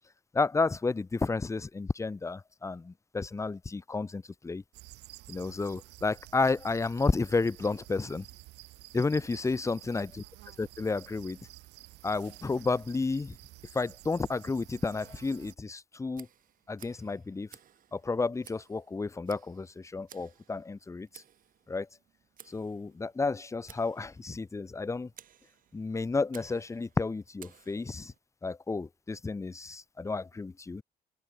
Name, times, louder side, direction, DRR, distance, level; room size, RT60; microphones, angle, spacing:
voice 1, 0.3-4.6 5.3-8.2 8.9-10.2 10.6-11.4 12.0-13.4 13.7-16.3 16.7-17.5 17.9-21.2 21.7-21.9 22.5-25.1 25.7-28.1 28.4-30.8, left 3 dB, 15° left, 1.2 m, -31 dB
sound 1, 4.7-15.6, right 19 dB, 85° right, 6.2 m, -51 dB
Tick, 16.1-28.2, right 10 dB, 55° right, 3.6 m, -57 dB
open air
cardioid pair, 110°, 17 cm